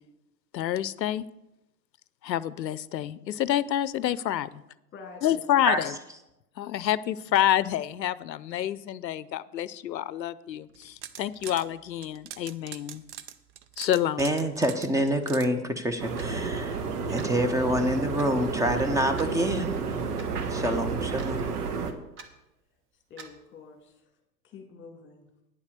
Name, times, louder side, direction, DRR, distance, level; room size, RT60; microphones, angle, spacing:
voice 1, 0.5-1.3 2.2-4.5 5.2-5.9 6.6-13.0 13.8-14.3, left 11 dB, 80° left, 18 dB, 0.6 m, -28 dB
voice 2, 4.9-5.4 23.1-24.0 24.4-25.3, left 5 dB, 20° left, 3 dB, 2.1 m, -47 dB
sound 1, 10.7-11.7 12.0-15.5, right 11 dB, 45° right, 0.8 m, -42 dB
voice 3, 14.2-16.8 17.1-19.8 20.5-21.5, equal, 5° right, 7 dB, 0.9 m, -27 dB
sound 2, 16.0-21.9, right 5 dB, 65° right, 1.5 m, -31 dB
Clock, 16.2-16.4 17.2-17.4 18.2-18.3 19.2-19.4 20.2-20.3 21.2-21.4 22.2-22.3 23.2-23.4, right 4 dB, 25° right, 1.2 m, -45 dB
9.7 x 7.2 x 6.5 m, 0.91 s
figure-of-eight pair, 100°, 50 cm